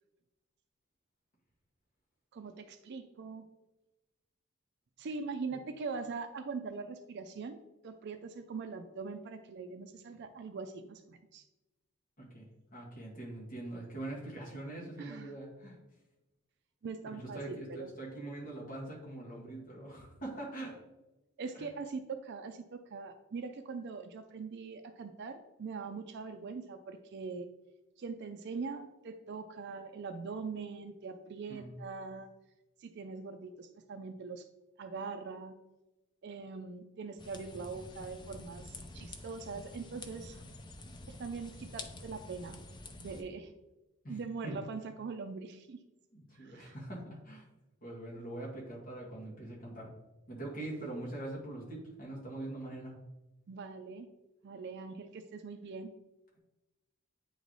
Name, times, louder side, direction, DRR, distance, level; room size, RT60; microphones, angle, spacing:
voice 1, 2.3-3.4 5.0-7.6 7.8-11.4 15.0-15.3 16.8-17.9 21.4-27.5 28.0-32.3 32.8-34.4 34.8-35.6 36.2-40.4 41.1-42.6 43.0-43.5 44.1-45.8 46.3-46.7 53.5-54.1 54.4-55.9, right 4 dB, 55° right, 7 dB, 0.4 m, -42 dB
voice 2, 12.2-15.8 17.0-20.8 21.5-21.7 31.5-31.8 44.0-44.6 46.1-47.4 47.8-49.9 50.3-53.0, right 1 dB, 40° left, -4 dB, 1.9 m, -43 dB
sound 1, 37.2-43.2, left 2 dB, 20° left, 0.5 m, -48 dB
8.9 x 3.2 x 4.0 m, 1.0 s
head